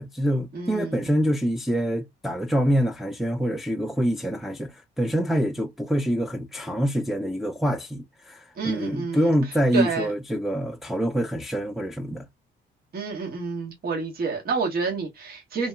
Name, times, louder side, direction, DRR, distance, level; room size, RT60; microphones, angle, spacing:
voice 1, 0.0-12.3, equal, ahead, 0.5 m, -25 dB
voice 2, 0.5-1.1 8.6-9.3 9.7-10.1 12.9-15.7, right 4 dB, 50° right, 1.2 m, -29 dB
2.9 x 2.7 x 2.2 m
cardioid pair, 90°, 20 cm